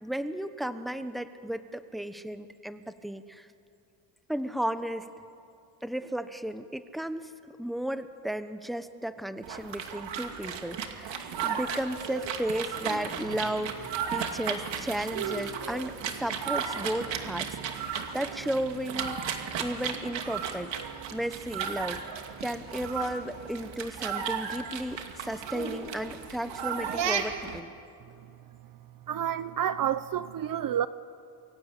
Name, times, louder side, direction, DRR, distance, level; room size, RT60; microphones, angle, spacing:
voice 1, 0.0-3.5 4.3-5.1 5.8-7.3 7.6-19.2 19.6-20.7 21.1-22.0 22.4-27.7, right 1 dB, ahead, 10 dB, 1.1 m, -34 dB
sound 1, 9.4-27.6, right 7 dB, 65° right, 2.6 m, -35 dB
voice 2, 29.1-30.9, right 10 dB, 45° right, 14 dB, 0.7 m, -29 dB
29.0 x 23.0 x 8.4 m, 2.5 s
cardioid pair, 135°, 47 cm